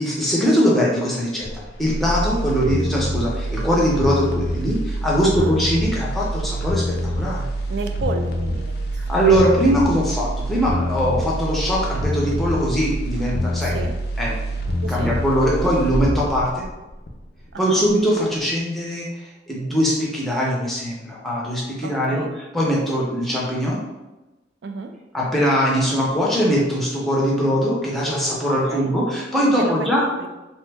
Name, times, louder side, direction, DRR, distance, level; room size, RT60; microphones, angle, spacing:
voice 1, 0.0-1.5 1.8-6.8 7.2-7.4 9.1-13.8 14.2-14.4 14.9-16.6 17.6-19.1 19.5-22.2 22.5-23.8 25.1-30.1, equal, ahead, -5 dB, 0.6 m, -21 dB
sound 1, 1.4-17.5 17.9-18.0, equal, 55° left, 0.4 m, -26 dB
voice 2, 5.2-5.6 7.7-9.0 13.6-13.9 14.8-15.2 17.5-17.8 21.8-22.4 24.6-25.0 28.6-29.0 29.6-30.3, right 3 dB, 65° right, 6 dB, 0.3 m, -32 dB
2.9 x 2.1 x 3.3 m, 1.1 s
head